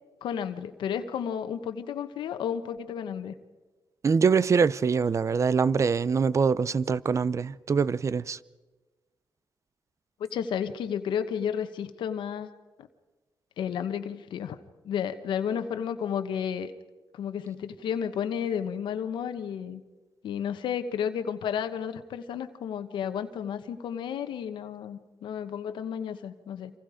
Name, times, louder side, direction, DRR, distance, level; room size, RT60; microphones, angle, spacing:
voice 1, 0.2-3.3 10.2-12.5 13.6-14.6 14.8-16.7 17.1-19.8 20.2-26.7, left 8 dB, 90° left, 1.2 m, -32 dB
voice 2, 4.0-8.4, right 5 dB, 40° right, 0.6 m, -24 dB
28.5 x 26.0 x 5.1 m
cardioid pair, 95°, 8 cm